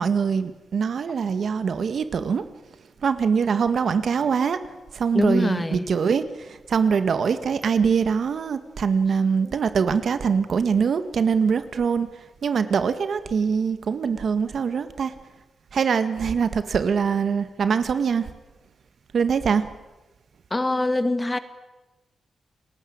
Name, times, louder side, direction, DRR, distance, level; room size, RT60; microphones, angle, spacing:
voice 1, 0.0-2.4 3.0-4.6 4.9-12.1 12.4-15.1 15.7-18.3 19.1-19.6, right 6 dB, 60° right, 11 dB, 1.8 m, -23 dB
voice 2, 5.1-5.9 9.4-9.6 20.5-21.4, left 2 dB, 15° left, 11 dB, 1.7 m, -24 dB
29.5 x 20.0 x 8.8 m, 1.1 s
wide cardioid pair, 140°, 0 cm